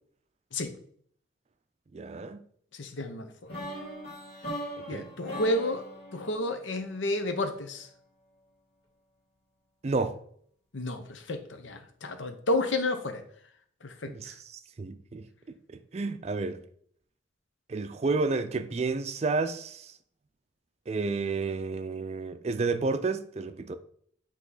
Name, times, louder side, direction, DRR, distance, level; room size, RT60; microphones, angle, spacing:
voice 1, 1.9-2.4 4.8-5.1 9.8-10.2 14.0-14.3 14.8-15.3 15.7-16.6 17.7-19.9 20.9-23.7, right 3 dB, 35° right, 0.4 m, -31 dB
voice 2, 2.8-3.5 4.9-5.8 6.1-7.9 10.7-13.2 13.8-14.1, left 1 dB, 85° left, 0.9 m, -31 dB
sound 1, 3.5-7.5, equal, 60° left, 2.3 m, -40 dB
8.4 x 3.0 x 3.9 m
head